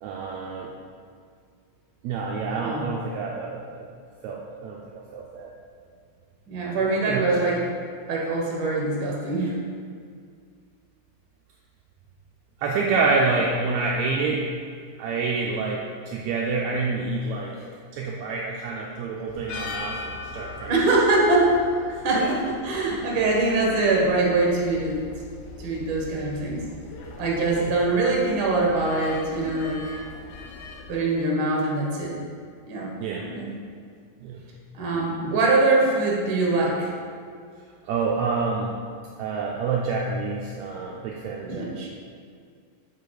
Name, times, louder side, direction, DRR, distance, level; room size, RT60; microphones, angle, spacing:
voice 1, 0.0-0.7 2.0-3.9 4.2-5.5 7.1-7.3 12.6-14.4 15.0-17.6 17.9-20.7 22.2-22.4 27.5-27.7 33.0-33.2 34.2-34.4 37.9-38.7 39.2-41.9, right 4 dB, 80° right, -2 dB, 1.8 m, -27 dB
voice 2, 2.6-2.9 6.5-7.6 8.1-9.5 20.7-21.5 22.0-25.0 25.6-26.7 27.2-30.0 30.9-32.2 32.7-32.9 33.2-33.5 34.7-36.9 41.4-41.9, right 2 dB, 50° right, -3 dB, 1.8 m, -23 dB
sound 1, 19.3-31.0, left 3 dB, 85° left, 2.2 m, -41 dB
7.2 x 4.9 x 4.7 m, 2.2 s
omnidirectional pair, 3.5 m